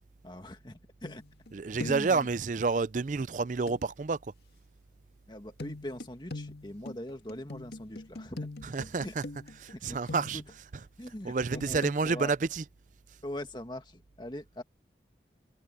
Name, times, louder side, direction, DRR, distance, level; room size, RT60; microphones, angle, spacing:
voice 1, 0.2-1.2 1.8-2.3 5.3-8.5 9.0-9.1 9.7-10.0 10.3-10.4 11.0-12.3 13.2-14.6, left 1 dB, 25° left, 1.9 m, -41 dB
sound 1, 1.0-1.5 1.8-2.2 3.7-3.8 5.6-10.6 11.5-12.0, left 2 dB, 65° left, 2.2 m, -42 dB
voice 2, 1.5-4.2 8.6-9.2 9.6-10.4 11.2-12.6, right 4 dB, 45° right, 0.4 m, -29 dB
head